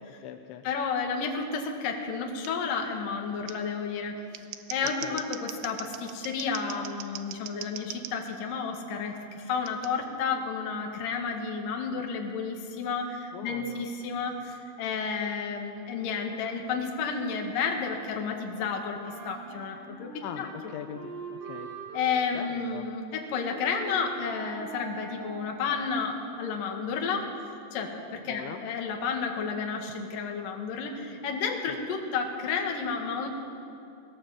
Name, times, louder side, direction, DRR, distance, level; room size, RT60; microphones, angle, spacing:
voice 1, 0.0-0.6 4.8-5.2 13.3-13.8 20.2-21.1 21.4-21.7 22.3-22.9 28.3-28.6 31.7-31.8, left 9 dB, 80° left, 6 dB, 3.1 m, -41 dB
voice 2, 0.6-4.2 4.7-20.1 20.4-20.5 21.9-27.3 27.7-33.3, left 5 dB, 55° left, 2 dB, 3.0 m, -31 dB
Scissors, 2.4-2.5 3.5-3.6 4.2-8.1 9.7-9.9, right 12 dB, 75° right, 2.5 m, -40 dB
Wind instrument woodwind instrument, 19.0-26.2, right 4 dB, 60° right, 7.9 m, -43 dB
20.0 x 18.5 x 7.8 m, 2.6 s
omnidirectional pair, 5.5 m